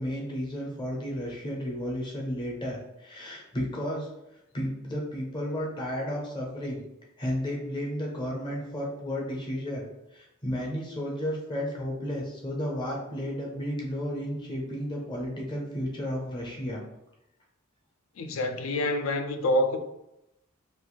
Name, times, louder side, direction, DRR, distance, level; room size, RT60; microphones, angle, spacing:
voice 1, 0.0-6.8 7.2-9.9 10.1-16.8, equal, 20° left, 0.6 m, -33 dB
voice 2, 18.2-19.8, left 1 dB, 70° left, 0.4 m, -27 dB
2.5 x 2.3 x 3.0 m
head